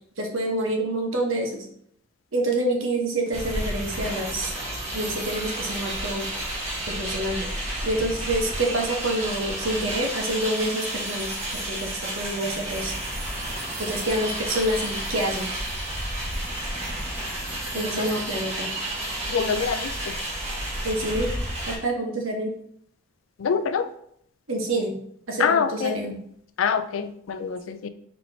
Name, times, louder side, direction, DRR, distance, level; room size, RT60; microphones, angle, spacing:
voice 1, 0.2-1.7 2.3-4.5 4.9-6.3 6.9-7.5 7.8-12.9 13.8-15.5 17.7-18.7 20.8-21.3 21.7-22.5 24.5-25.0 25.3-26.2, right 1 dB, 90° right, 1 dB, 1.1 m, -27 dB
sound 1, 3.3-21.8, right 1 dB, 30° right, 1.3 m, -31 dB
voice 2, 17.7-18.1 19.3-20.2 23.4-23.9 25.4-26.0 26.6-27.9, left 6 dB, 85° left, 11 dB, 0.4 m, -25 dB
4.3 x 4.3 x 2.7 m, 0.70 s
head